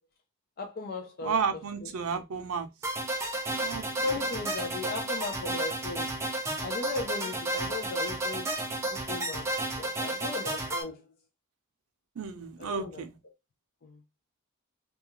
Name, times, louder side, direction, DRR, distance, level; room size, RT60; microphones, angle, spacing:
voice 1, 0.6-1.4 2.1-2.2 4.0-6.1 6.6-8.5 8.9-9.5 9.8-11.0 12.6-13.0 13.8-14.0, left 3 dB, 45° left, 0.4 m, -37 dB
voice 2, 1.2-2.7 3.6-4.2 12.2-13.2, right 6 dB, 80° right, 0.5 m, -32 dB
sound 1, 2.8-10.8, right 1 dB, 15° right, 0.4 m, -32 dB
2.3 x 2.3 x 2.8 m
head